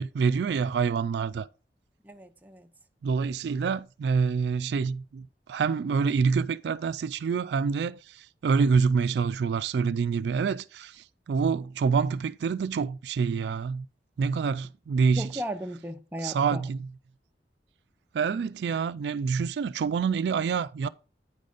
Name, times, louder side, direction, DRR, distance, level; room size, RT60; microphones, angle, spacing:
voice 1, 0.0-1.5 3.0-13.8 14.2-15.4 16.2-16.9 18.1-20.9, right 5 dB, 75° right, 0.3 m, -27 dB
voice 2, 2.0-2.7 15.2-16.6, equal, 10° right, 0.6 m, -36 dB
9.3 x 4.0 x 5.0 m
head